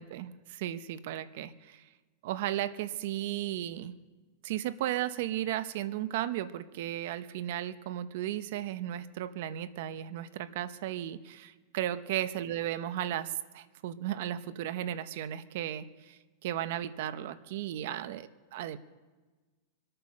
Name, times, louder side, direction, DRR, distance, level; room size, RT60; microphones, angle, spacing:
voice 1, 0.0-1.8 2.2-3.9 4.4-18.8, right 12 dB, 65° right, 13 dB, 0.9 m, -35 dB
24.5 x 8.9 x 6.4 m, 1.3 s
supercardioid pair, 140°, 0 cm